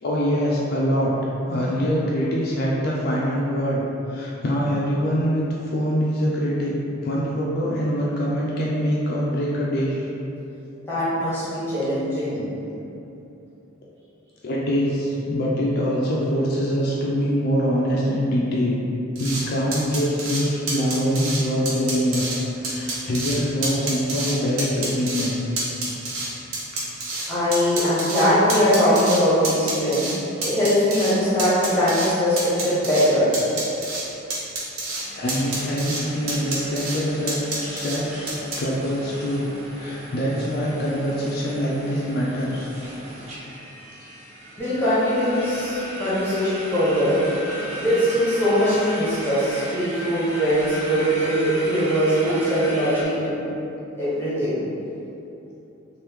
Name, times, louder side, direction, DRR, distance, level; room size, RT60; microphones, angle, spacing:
voice 1, 0.0-1.1 1.5-3.8 4.1-6.7 7.0-10.1 14.4-18.8 19.2-22.3 22.6-25.5 25.9-26.0 35.1-42.7 43.0-43.2, equal, 45° left, -5 dB, 0.3 m, -24 dB
voice 2, 10.9-12.5 24.3-24.4 27.3-30.1 30.4-33.3 44.6-47.2 47.8-53.4 54.0-54.6, equal, 10° left, -12 dB, 0.8 m, -21 dB
sound 1, 19.2-19.4 19.7-20.4 20.7-21.4 21.7-22.4 22.6-23.4 23.6-24.3 24.6-25.3 25.6-27.3 27.5-29.2 29.4-30.2 30.4-31.1 31.4-32.1 32.4-33.1 33.3-34.0 34.3-35.0 35.3-36.0 36.3-37.0 37.3-38.0 38.3-38.6, right 2 dB, 85° right, 0.7 m, -28 dB
sound 2, 34.9-53.0, equal, 30° right, 0.6 m, -36 dB
3.0 x 2.6 x 3.4 m, 2.9 s
head